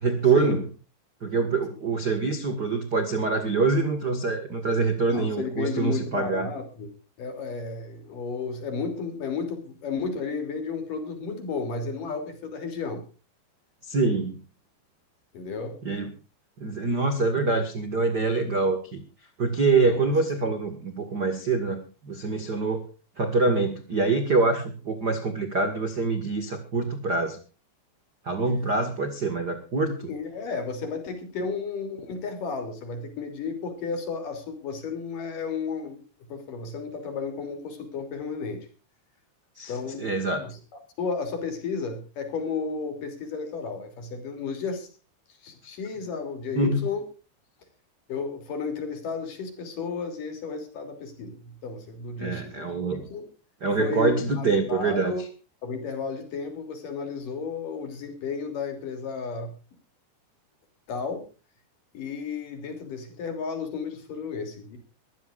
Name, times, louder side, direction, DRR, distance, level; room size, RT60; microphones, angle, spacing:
voice 1, 0.0-0.7 1.2-6.5 13.8-14.4 15.8-16.1 16.6-19.0 19.4-22.8 23.2-27.4 28.2-30.1 39.6-39.7 40.0-40.4 46.5-46.8 52.2-53.1 53.6-55.1, right 3 dB, 60° right, 8 dB, 1.0 m, -25 dB
voice 2, 5.1-6.9 7.2-13.0 15.3-15.8 19.8-20.1 30.0-36.0 36.3-38.6 39.7-40.1 40.4-40.6 41.0-44.9 45.4-47.0 48.1-52.7 53.1-53.2 53.8-55.2 55.6-59.5 60.9-61.3 61.9-64.8, left 5 dB, 50° left, 7 dB, 4.5 m, -33 dB
23.5 x 15.0 x 2.5 m, 0.34 s
omnidirectional pair, 5.0 m